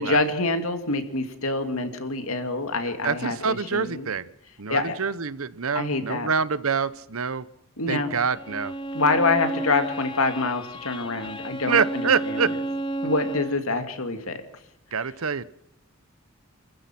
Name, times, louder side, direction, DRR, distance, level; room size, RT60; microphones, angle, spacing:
voice 1, 0.0-4.1 4.7-5.0 5.7-6.3 7.8-8.1 8.9-12.4 13.0-14.4, left 3 dB, 80° left, 7 dB, 2.5 m, -26 dB
voice 2, 3.0-4.3 4.6-7.4 7.9-8.7 11.7-12.5 14.9-15.5, right 5 dB, 80° right, 16 dB, 0.9 m, -26 dB
Bowed string instrument, 8.3-13.7, right 1 dB, 20° left, 0.8 m, -32 dB
29.0 x 15.0 x 6.0 m, 0.81 s
head